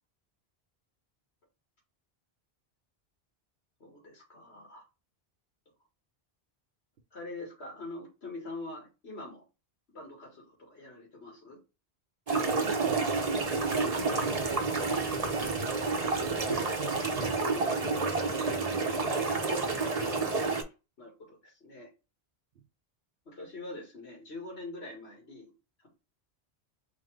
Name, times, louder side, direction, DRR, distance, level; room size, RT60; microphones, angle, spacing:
voice 1, 3.8-4.8 7.1-9.4 9.9-11.6 16.5-16.7 18.3-18.7 20.1-20.5 21.0-21.9 23.3-25.5, left 2 dB, 85° left, 2.1 m, -44 dB
sound 1, 12.3-20.6, right 3 dB, 35° right, 0.9 m, -29 dB
voice 2, 12.7-13.3 13.7-15.1 15.4-16.1 16.5-17.5 17.8-19.4, right 6 dB, 65° right, 1.0 m, -41 dB
4.2 x 3.8 x 3.3 m
omnidirectional pair, 1.1 m